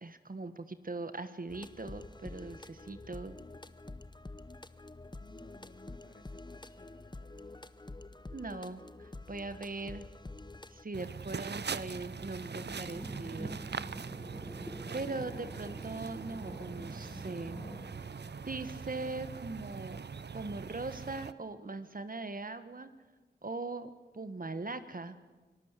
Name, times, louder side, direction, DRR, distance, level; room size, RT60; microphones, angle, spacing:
voice 1, 0.0-3.4 8.3-10.1 10.7-13.6 14.9-17.6 18.0-18.1 18.4-20.0 20.3-22.9 23.4-25.2, right 3 dB, 50° right, 12 dB, 1.4 m, -40 dB
sound 1, 1.5-10.8, left 2 dB, 25° left, 0.8 m, -48 dB
voice 2, 5.2-7.7, left 2 dB, 55° left, 11 dB, 1.6 m, -58 dB
sound 2, 10.9-21.3, right 6 dB, 70° right, 0.6 m, -42 dB
sound 3, 12.4-18.5, equal, 5° left, 1.3 m, -47 dB
23.5 x 19.0 x 8.3 m, 1.2 s
wide cardioid pair, 60°, 18 cm